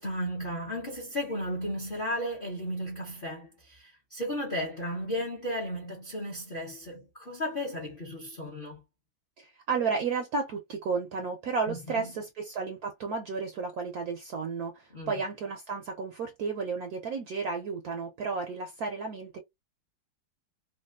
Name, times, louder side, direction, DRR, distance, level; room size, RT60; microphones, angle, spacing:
voice 1, 0.0-8.8 11.7-12.1 14.9-15.1, equal, 45° left, 0.7 m, -34 dB
voice 2, 9.4-19.4, right 4 dB, 75° right, 0.9 m, -33 dB
3.2 x 2.3 x 2.4 m
omnidirectional pair, 2.1 m